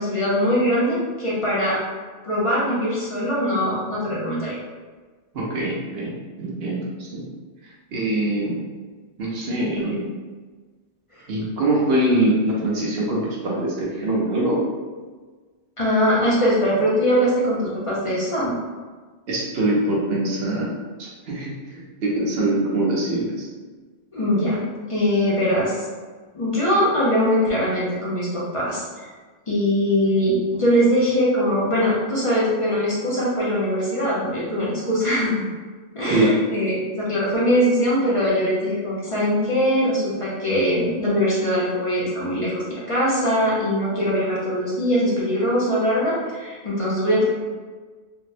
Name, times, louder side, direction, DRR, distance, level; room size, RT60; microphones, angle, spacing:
voice 1, 0.0-1.8 2.3-4.6 15.8-18.5 24.1-24.6 24.9-25.8 26.3-29.1 29.5-35.4 35.9-47.3, equal, 35° left, -7 dB, 0.6 m, -21 dB
voice 2, 5.3-6.1 6.4-7.2 7.9-8.6 9.2-10.1 11.3-14.6 19.3-23.5 36.1-36.4, right 1 dB, 60° right, -4 dB, 0.9 m, -23 dB
3.5 x 2.1 x 2.6 m, 1.4 s
omnidirectional pair, 1.2 m